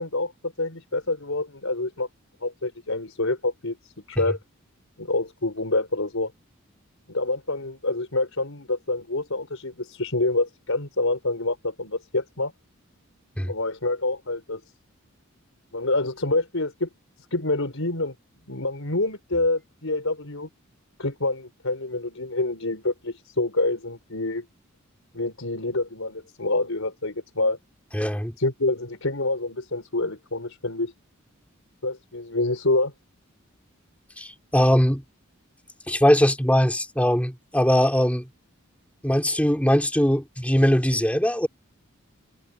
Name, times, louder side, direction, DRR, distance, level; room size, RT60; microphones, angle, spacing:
voice 1, 0.0-2.1 2.4-4.4 5.0-6.3 7.1-12.5 13.5-14.6 15.7-16.9 17.3-18.1 18.5-20.5 21.0-24.5 25.1-27.6 28.4-30.9 31.8-32.9, left 2 dB, 75° left, 4.7 m, -27 dB
voice 2, 27.9-28.3 34.2-35.0 35.9-38.3 39.0-41.5, equal, 5° left, 3.2 m, -21 dB
head